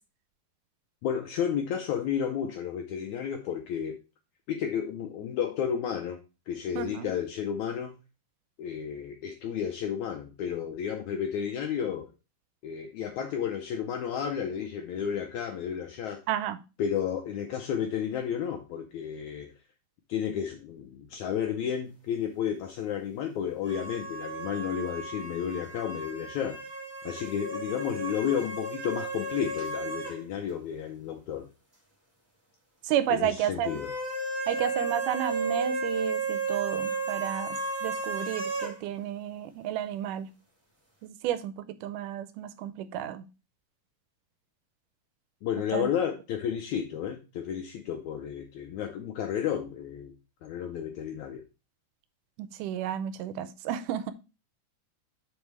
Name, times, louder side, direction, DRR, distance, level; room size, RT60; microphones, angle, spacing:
voice 1, 1.0-4.0 4.5-6.2 6.5-8.0 8.6-12.1 12.6-16.2 16.8-19.5 20.1-26.6 27.0-31.5 33.1-33.9 45.4-50.1 50.4-51.4, left 8 dB, 80° left, 4 dB, 1.8 m, -32 dB
voice 2, 6.8-7.1 16.3-16.6 32.8-33.7 34.5-40.3 41.0-41.5 41.8-43.2 45.7-45.9 52.4-54.1, right 10 dB, 80° right, 12 dB, 2.1 m, -32 dB
sound 1, 23.6-30.2 30.5-30.6 33.6-38.7, right 3 dB, 10° right, 1.2 m, -34 dB
5.3 x 5.3 x 4.5 m, 0.30 s
omnidirectional pair, 4.0 m